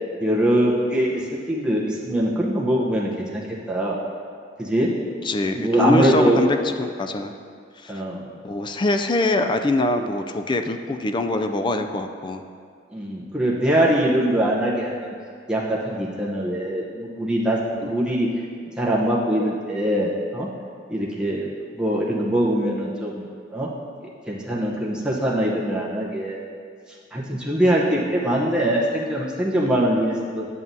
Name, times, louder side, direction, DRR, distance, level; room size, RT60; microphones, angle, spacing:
voice 1, 0.2-1.2 1.5-3.4 3.7-4.0 4.6-4.9 5.6-6.4 7.9-8.2 12.9-15.1 15.5-18.3 18.8-20.5 20.9-21.5 21.7-23.2 23.5-23.7 24.3-26.4 27.1-30.5, right 1 dB, 5° right, -6 dB, 0.8 m, -22 dB
voice 2, 5.2-7.3 7.8-8.0 8.4-12.4 17.8-17.9, left 2 dB, 25° left, 6 dB, 0.3 m, -23 dB
10.5 x 7.3 x 2.7 m, 2.2 s
head